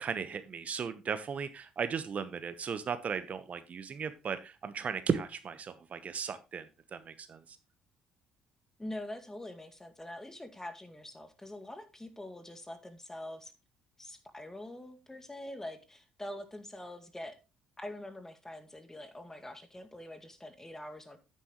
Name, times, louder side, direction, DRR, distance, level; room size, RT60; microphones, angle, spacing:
voice 1, 0.0-6.7 6.9-7.6, right 6 dB, 45° right, 1.0 m, -36 dB
voice 2, 8.8-13.5 14.0-17.4 17.8-21.2, left 1 dB, 15° left, 2.0 m, -44 dB
9.6 x 9.2 x 3.0 m
hypercardioid pair, 55°, 3 cm